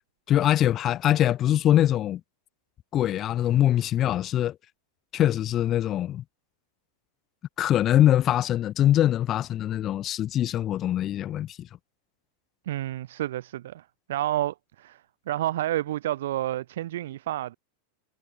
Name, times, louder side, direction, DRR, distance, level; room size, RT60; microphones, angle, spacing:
voice 1, 0.3-2.2 2.9-4.5 5.1-6.2 7.6-11.6, left 12 dB, 30° left, 1.1 m, -23 dB
voice 2, 12.7-17.6, right 13 dB, 55° right, 1.8 m, -30 dB
figure-of-eight pair, 90°, 0 cm